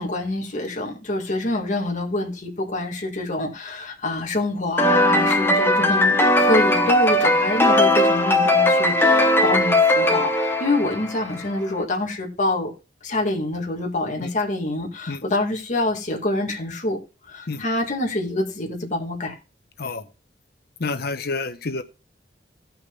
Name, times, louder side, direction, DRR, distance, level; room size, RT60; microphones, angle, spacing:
voice 1, 0.0-12.7 13.0-17.0 17.2-19.4, left 2 dB, 45° left, 1.9 m, -26 dB
sound 1, 4.8-11.4, left 1 dB, 15° left, 0.9 m, -18 dB
voice 2, 20.8-21.8, left 3 dB, 60° left, 0.9 m, -28 dB
17.5 x 5.8 x 2.4 m
head